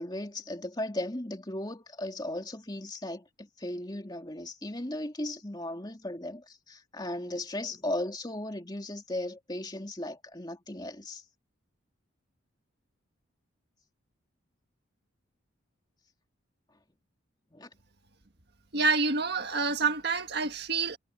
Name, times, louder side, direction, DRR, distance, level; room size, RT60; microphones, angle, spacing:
voice 1, 0.0-11.2 17.5-17.7, left 1 dB, 20° left, 2.7 m, -36 dB
voice 2, 18.7-21.0, right 4 dB, 50° right, 1.7 m, -27 dB
head